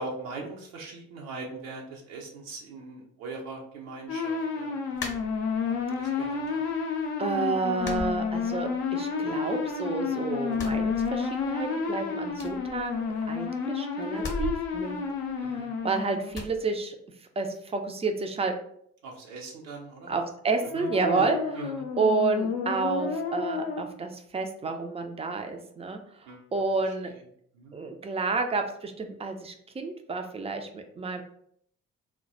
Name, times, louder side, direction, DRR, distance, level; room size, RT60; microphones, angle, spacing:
voice 1, 0.0-5.0 5.6-6.6 15.4-15.7 19.0-20.1 20.7-20.9 21.1-21.3 21.5-21.8 26.3-26.4 27.5-27.7, right 3 dB, 75° right, -1 dB, 0.6 m, -40 dB
sound 1, 4.1-16.4 20.6-23.8, left 5 dB, 60° left, 0.6 m, -31 dB
sound 2, 5.0-5.9 6.2-6.9 7.2-7.3 7.8-8.9 9.2-10.0 10.4-11.6 11.9-12.0 12.3-13.5 14.1-15.8 16.3-16.6, left 3 dB, 25° left, 0.8 m, -39 dB
voice 2, 6.1-6.5 7.2-15.0 15.5-17.0 17.4-18.6 20.1-21.7 22.0-26.0 26.5-27.1 27.7-31.2, right 4 dB, 15° right, 5 dB, 0.3 m, -30 dB
2.3 x 2.1 x 3.8 m, 0.67 s
figure-of-eight pair, 40°, 42 cm